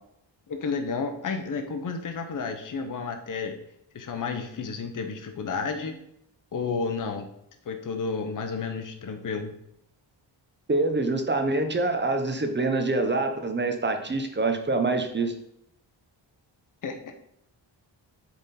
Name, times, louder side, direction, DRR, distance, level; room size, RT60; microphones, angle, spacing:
voice 1, 0.5-3.5 3.9-6.0 6.5-7.3 7.6-9.5 16.8-17.1, left 4 dB, 45° left, 6 dB, 0.8 m, -31 dB
voice 2, 10.7-15.3, right 2 dB, 25° right, 6 dB, 0.8 m, -25 dB
7.0 x 3.7 x 4.2 m, 0.75 s
wide cardioid pair, 105°, 45 cm